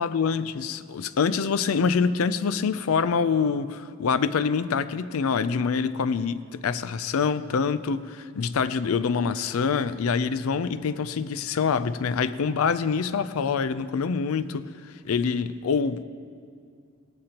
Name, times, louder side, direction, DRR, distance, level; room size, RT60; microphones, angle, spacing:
voice 1, 0.0-16.0, left 5 dB, 90° left, 14 dB, 0.4 m, -25 dB
17.0 x 12.5 x 2.9 m, 2.3 s
head